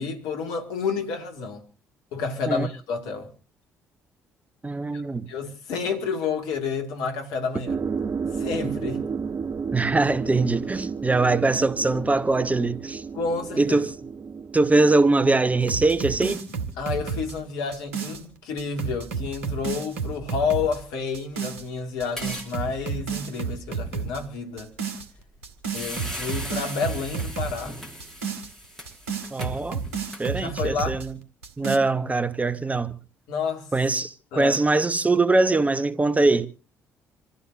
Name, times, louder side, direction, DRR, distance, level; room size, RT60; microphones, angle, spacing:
voice 1, 0.0-1.7 2.1-3.3 4.9-5.0 5.3-7.8 8.3-9.0 13.1-13.8 16.8-24.7 25.7-27.8 30.3-31.0 33.3-33.7 34.3-34.6, left 5 dB, 65° left, 2.1 m, -30 dB
voice 2, 4.6-5.3 9.7-13.0 13.6-13.9 14.5-16.5 29.3-29.8 30.2-31.1 31.6-33.0 33.7-36.5, right 3 dB, 20° right, 1.1 m, -22 dB
sound 1, 7.7-15.8, right 5 dB, 35° right, 0.8 m, -32 dB
sound 2, 15.6-18.2 18.6-20.8 21.1-21.6 22.0-24.2 24.6-25.1 25.4-27.6 28.0-31.1 31.4-31.8, right 6 dB, 75° right, 1.9 m, -31 dB
sound 3, 22.1-22.5 22.8-22.9 25.2-25.4 25.7-30.6, equal, 5° left, 5.4 m, -38 dB
27.5 x 14.0 x 2.6 m
figure-of-eight pair, 45°, 7 cm